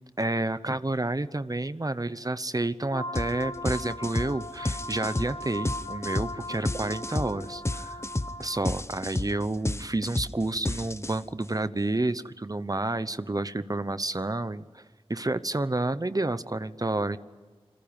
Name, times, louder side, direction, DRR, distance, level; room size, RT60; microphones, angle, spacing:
voice 1, 0.2-8.0 8.4-14.8 15.1-17.2, right 2 dB, 35° right, 14 dB, 1.0 m, -30 dB
sound 1, 2.9-8.6, left 1 dB, 60° left, 2.7 m, -38 dB
sound 2, 3.1-3.3 3.6-11.4, left 2 dB, 25° left, 1.0 m, -31 dB
28.5 x 22.5 x 9.0 m, 1.3 s
wide cardioid pair, 50°, 10 cm